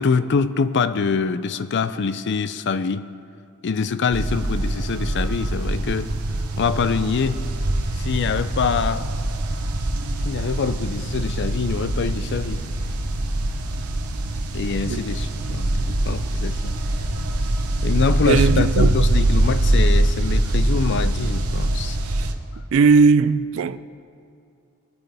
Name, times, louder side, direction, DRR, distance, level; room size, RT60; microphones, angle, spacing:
voice 1, 0.0-3.1 3.6-6.1 6.6-7.4 8.0-9.1 10.2-12.6 14.5-16.8 17.8-22.0, left 5 dB, 55° left, 0.4 m, -24 dB
sound 1, 4.1-22.3, right 1 dB, 90° right, 1.0 m, -23 dB
voice 2, 18.2-18.9 22.1-22.3 22.7-23.8, right 5 dB, 60° right, 0.4 m, -18 dB
21.0 x 9.1 x 3.4 m
head